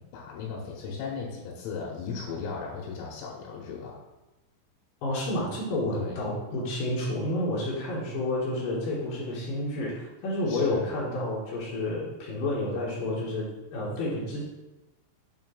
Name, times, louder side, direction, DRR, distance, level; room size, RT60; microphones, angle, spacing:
voice 1, 0.1-4.0 5.9-6.2 10.5-10.9, left 5 dB, 90° left, -4 dB, 3.8 m, -36 dB
voice 2, 5.0-14.4, left 1 dB, 75° left, -6 dB, 2.0 m, -30 dB
8.4 x 2.9 x 5.6 m, 1.0 s
omnidirectional pair, 6.0 m